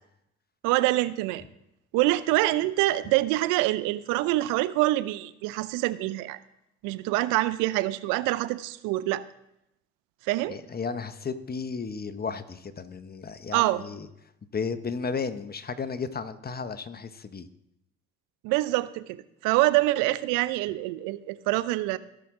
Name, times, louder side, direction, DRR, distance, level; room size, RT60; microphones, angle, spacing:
voice 1, 0.6-1.4 1.9-6.4 6.8-9.3 10.3-10.6 13.5-13.8 18.4-19.2 19.4-22.0, right 17 dB, 80° right, 15 dB, 0.6 m, -25 dB
voice 2, 10.5-14.1 14.5-17.5, left 5 dB, 30° left, 12 dB, 0.9 m, -34 dB
17.0 x 5.9 x 3.6 m, 0.82 s
hypercardioid pair, 60°, 31 cm